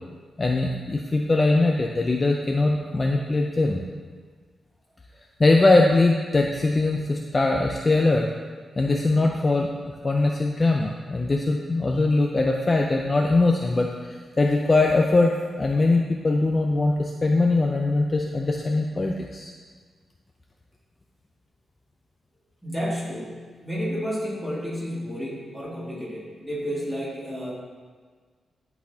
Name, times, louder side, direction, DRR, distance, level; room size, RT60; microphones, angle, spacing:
voice 1, 0.4-3.8 5.4-8.3 8.8-9.7 10.0-19.5, left 2 dB, 25° left, 1 dB, 0.4 m, -21 dB
voice 2, 22.6-27.5, equal, 5° right, -7 dB, 1.9 m, -31 dB
11.0 x 4.0 x 2.7 m, 1.5 s
wide cardioid pair, 120°, 0 cm